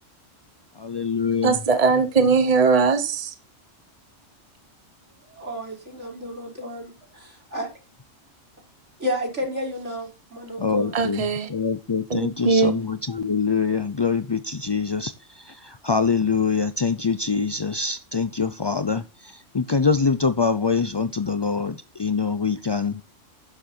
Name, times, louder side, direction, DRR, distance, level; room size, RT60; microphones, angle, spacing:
voice 1, 0.8-1.6 10.6-11.2 11.5-15.1 15.4-19.0 19.5-23.0, left 5 dB, 35° left, 0.4 m, -24 dB
voice 2, 1.4-3.3 10.9-11.5 12.1-12.8, right 4 dB, 30° right, 1.2 m, -20 dB
voice 3, 5.3-7.7 9.0-10.9, equal, 65° right, 5.8 m, -32 dB
13.0 x 10.0 x 4.5 m
omnidirectional pair, 1.3 m